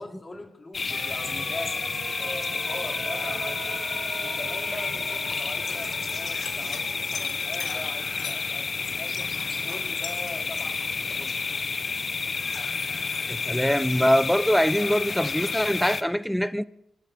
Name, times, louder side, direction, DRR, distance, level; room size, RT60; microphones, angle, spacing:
voice 1, 0.0-1.8 2.2-3.8 4.2-9.3 9.6-11.4, left 2 dB, 30° left, 3.0 m, -41 dB
sound 1, 0.7-16.0, left 4 dB, 45° left, 0.9 m, -30 dB
sound 2, 0.9-10.8 11.1-11.2, right 6 dB, 65° right, 1.1 m, -42 dB
sound 3, 5.3-8.4 8.7-11.2, left 7 dB, 75° left, 1.9 m, -41 dB
voice 2, 13.3-16.6, equal, ahead, 0.7 m, -23 dB
23.5 x 12.0 x 3.7 m
supercardioid pair, 60°, 0 cm